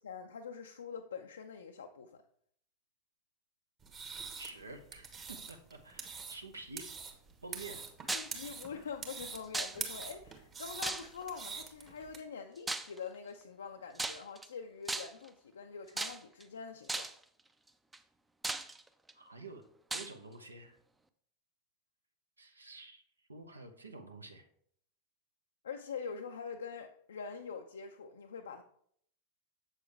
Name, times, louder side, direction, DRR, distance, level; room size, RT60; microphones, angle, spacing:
voice 1, 0.0-2.2 8.1-17.1 25.6-28.6, left 6 dB, 65° left, 0.4 m, -44 dB
sound 1, 3.8-12.2, right 5 dB, 25° right, 1.2 m, -45 dB
voice 2, 4.4-6.9 7.4-7.9 19.1-19.6 19.9-20.8 22.4-23.0 23.3-24.5, right 3 dB, 80° right, 0.8 m, -49 dB
sound 2, 8.1-8.4 9.5-10.1 10.8-11.4 12.7-13.0 14.0-14.5 14.9-15.3 16.0-16.4 16.9-17.2 17.9-18.0 18.4-19.1 19.9-20.1, right 2 dB, 10° right, 0.4 m, -37 dB
7.4 x 6.4 x 3.3 m
figure-of-eight pair, 90°, 0 cm